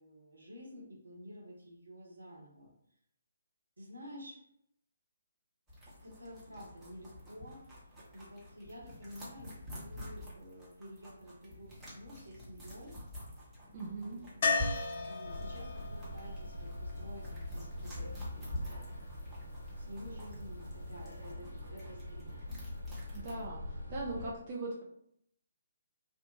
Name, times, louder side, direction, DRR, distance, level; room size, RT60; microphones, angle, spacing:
voice 1, 0.0-2.7 3.8-4.4 6.0-13.0 13.8-14.5 15.1-18.5 19.8-22.4, equal, 75° right, -2 dB, 0.9 m, -51 dB
sound 1, 5.7-23.4, left 1 dB, 5° right, 0.8 m, -48 dB
voice 2, 13.7-14.2 23.1-23.6 23.9-24.8, right 2 dB, 35° right, -2 dB, 0.4 m, -39 dB
sound 2, 14.4-18.3 21.0-21.1 21.3-21.4, left 4 dB, 45° left, 0.4 m, -36 dB
sound 3, 15.2-24.3, left 1 dB, 75° left, 0.8 m, -43 dB
2.6 x 2.0 x 2.8 m, 0.72 s
figure-of-eight pair, 140°, 0 cm